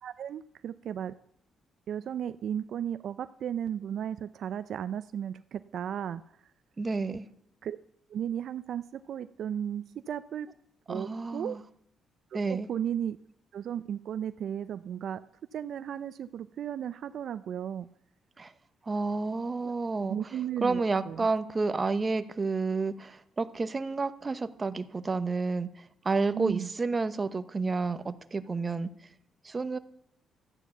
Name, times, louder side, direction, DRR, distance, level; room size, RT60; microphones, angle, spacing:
voice 1, 0.0-1.1 1.9-6.2 7.6-7.8 8.1-10.5 10.9-11.6 12.5-13.2 13.5-15.2 15.5-17.9 20.1-21.2 26.3-26.7, right 9 dB, 65° right, 13 dB, 0.4 m, -35 dB
voice 2, 6.8-7.2 10.9-11.6 12.3-12.7 18.4-18.5 18.9-28.9 29.4-29.8, right 3 dB, 30° right, 12 dB, 0.9 m, -30 dB
13.0 x 9.1 x 7.0 m, 0.70 s
cardioid pair, 90°, 0 cm